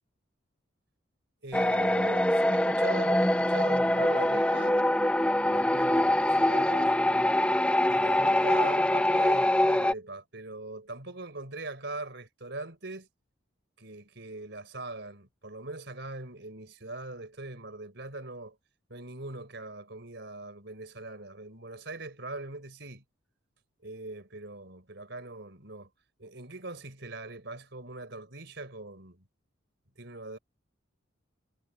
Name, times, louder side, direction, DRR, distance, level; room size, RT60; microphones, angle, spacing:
voice 1, 1.4-4.8 5.4-7.0 7.9-13.1 13.8-18.6 18.9-23.0 23.8-25.9 26.2-29.2 30.0-30.4, right 2 dB, 60° right, 4.6 m, -41 dB
sound 1, 1.5-9.9, left 1 dB, 5° left, 0.6 m, -24 dB
head